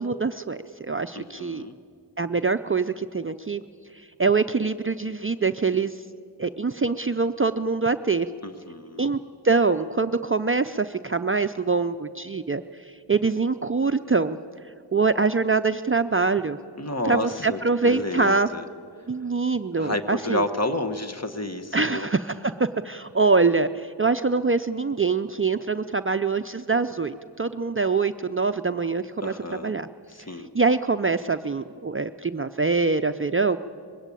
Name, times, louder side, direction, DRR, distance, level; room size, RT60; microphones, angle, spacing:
voice 1, 0.0-1.7 2.2-3.6 3.9-6.0 6.4-8.3 9.0-9.2 9.4-14.4 14.9-16.6 17.0-18.5 19.1-20.5 21.7-29.9 30.3-33.6, right 4 dB, 30° right, 10 dB, 0.5 m, -24 dB
voice 2, 1.1-1.7 8.4-9.1 16.8-18.6 19.8-22.1 29.2-29.7 30.1-30.5, left 2 dB, 35° left, 8 dB, 1.2 m, -30 dB
21.0 x 16.5 x 8.4 m, 2.3 s
wide cardioid pair, 55°, 44 cm